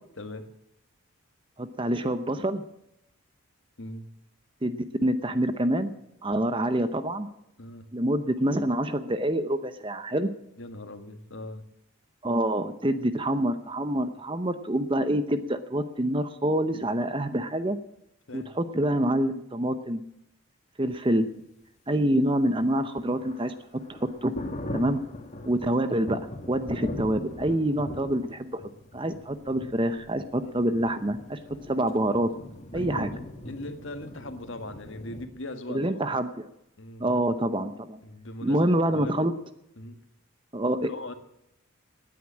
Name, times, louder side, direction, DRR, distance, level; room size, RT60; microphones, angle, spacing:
voice 1, 0.2-0.5 3.8-4.1 7.6-7.9 10.6-11.6 18.3-18.5 24.8-25.0 30.4-30.5 32.7-36.0 36.8-37.1 38.0-39.3 39.8-40.0 40.8-41.1, left 1 dB, 60° left, 8 dB, 1.6 m, -40 dB
voice 2, 1.6-2.6 4.6-5.9 6.2-7.3 7.9-10.3 12.2-17.8 18.3-20.0 20.8-21.3 21.9-23.5 23.9-24.4 24.7-25.0 25.5-26.2 26.5-28.6 28.9-31.4 31.7-32.3 32.7-33.1 35.7-36.5 37.0-38.0 38.4-39.3 40.5-41.1, right 1 dB, 25° right, 11 dB, 0.8 m, -26 dB
Thunder, 22.4-35.3, left 1 dB, 30° left, 2.3 m, -40 dB
18.5 x 9.6 x 7.4 m, 0.81 s
head